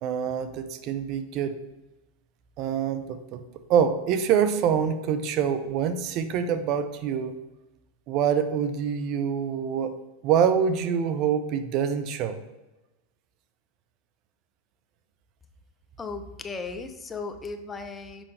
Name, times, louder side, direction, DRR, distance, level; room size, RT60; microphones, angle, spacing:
voice 1, 0.0-1.6 2.6-3.4 3.7-7.3 8.1-9.9 10.2-12.4, right 8 dB, 50° right, 10 dB, 0.6 m, -25 dB
voice 2, 16.0-18.2, left 4 dB, 20° left, 8 dB, 0.6 m, -36 dB
6.2 x 5.4 x 3.2 m, 1.1 s
hypercardioid pair, 100°, 0 cm